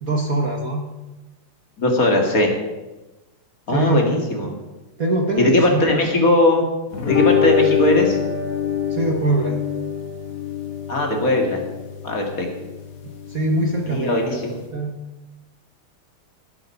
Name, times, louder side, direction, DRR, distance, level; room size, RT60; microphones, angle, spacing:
voice 1, 0.0-0.9 3.7-4.1 5.0-6.0 8.9-9.6 13.3-14.4 14.7-15.0, right 2 dB, 60° right, 1 dB, 0.9 m, -22 dB
voice 2, 1.8-2.5 3.7-4.5 5.4-6.6 7.1-8.2 10.9-11.6 12.0-12.5 13.9-14.5, left 1 dB, 30° left, 1 dB, 2.1 m, -19 dB
sound 1, 6.9-14.6, left 8 dB, 55° left, 2.5 m, -25 dB
17.5 x 7.9 x 5.9 m, 1.1 s
omnidirectional pair, 3.4 m